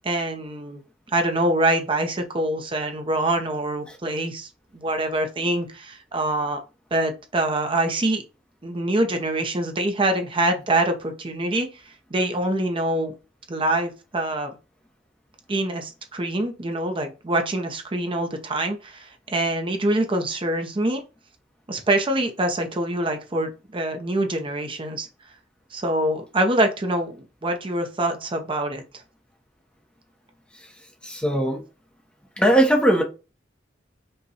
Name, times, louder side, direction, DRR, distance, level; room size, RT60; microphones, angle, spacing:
voice 1, 0.0-0.8 1.1-6.6 6.9-8.2 8.6-13.1 13.5-14.5 15.5-21.0 21.7-25.1 25.7-28.8, right 1 dB, 30° right, 0.6 m, -25 dB
voice 2, 31.0-31.6 32.4-33.0, right 1 dB, 5° left, 0.7 m, -19 dB
5.4 x 2.2 x 4.0 m
head